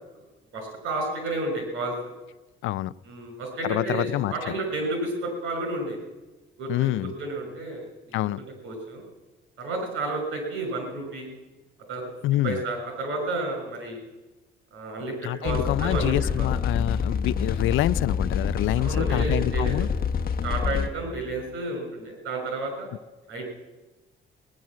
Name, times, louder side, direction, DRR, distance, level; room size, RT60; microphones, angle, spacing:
voice 1, 0.5-1.9 3.0-6.0 6.6-7.9 8.4-9.0 9.6-11.3 11.9-12.0 12.4-14.0 14.7-16.5 18.8-19.8 20.4-22.9 23.3-23.4, right 2 dB, 85° right, 3 dB, 5.8 m, -31 dB
voice 2, 2.6-2.9 3.6-4.3 6.7-7.1 8.1-8.4 12.2-12.6 15.2-19.9, left 15 dB, 80° left, 20 dB, 0.4 m, -26 dB
sound 1, 15.5-20.9, left 6 dB, 50° left, 1.1 m, -26 dB
18.0 x 10.5 x 7.5 m, 1.1 s
cardioid pair, 90°, 20 cm